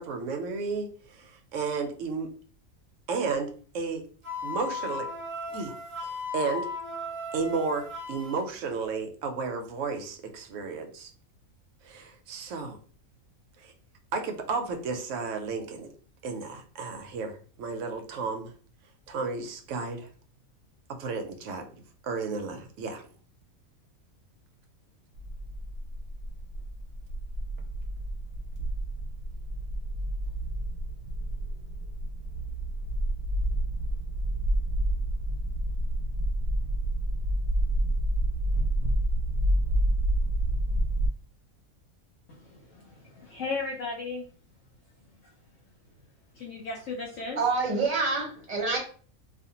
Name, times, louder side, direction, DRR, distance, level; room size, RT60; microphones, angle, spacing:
voice 1, 0.0-2.3 3.1-4.0 4.4-5.1 5.5-5.7 6.3-6.7 7.3-11.1 11.8-12.8 13.6-13.7 14.1-15.9 16.2-18.5 19.1-20.1 20.9-21.6 22.0-23.0, right 4 dB, 70° right, 5 dB, 0.8 m, -33 dB
Wind instrument woodwind instrument, 4.2-8.4, left 3 dB, 30° left, 0.9 m, -36 dB
sound 1, 25.1-41.1, right 1 dB, 90° right, 1.1 m, -29 dB
voice 2, 43.2-44.2 46.4-47.4, left 3 dB, 65° left, -2 dB, 0.9 m, -34 dB
voice 3, 47.3-48.8, right 4 dB, 30° right, -2 dB, 0.9 m, -27 dB
2.5 x 2.4 x 2.7 m, 0.42 s
omnidirectional pair, 1.5 m